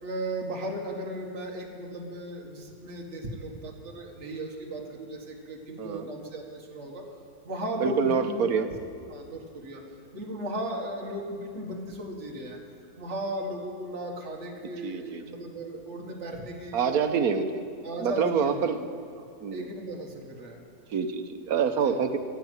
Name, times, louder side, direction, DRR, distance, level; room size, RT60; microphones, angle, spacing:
voice 1, 0.0-7.0 7.4-8.3 9.1-9.8 10.1-12.6 13.0-17.0 17.8-18.6 19.2-19.3 19.5-20.6 21.8-22.0, right 1 dB, 45° right, 0 dB, 1.9 m, -36 dB
voice 2, 7.8-8.7 14.8-15.2 16.7-17.6 18.0-18.8 19.4-19.7 20.9-22.2, right 6 dB, 65° right, 8 dB, 1.2 m, -26 dB
15.5 x 9.3 x 8.0 m, 2.2 s
omnidirectional pair, 1.7 m